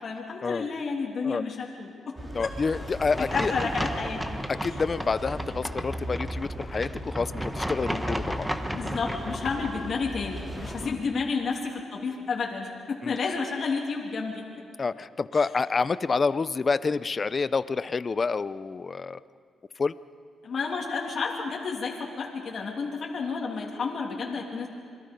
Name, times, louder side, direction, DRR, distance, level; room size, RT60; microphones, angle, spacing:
voice 1, 0.0-2.5 3.3-4.2 8.7-14.4 20.4-24.7, left 4 dB, 50° left, -1 dB, 3.0 m, -31 dB
sound 1, 2.2-10.9, equal, 20° right, 3.2 m, -38 dB
voice 2, 2.3-3.5 4.5-8.5 10.8-11.0 13.0-13.2 14.8-19.2 19.8-19.9, left 4 dB, 35° left, 15 dB, 0.6 m, -28 dB
sound 2, 3.1-9.7, equal, 5° right, 1.4 m, -34 dB
27.0 x 22.0 x 5.3 m, 2.2 s
cardioid pair, 105°, 0 cm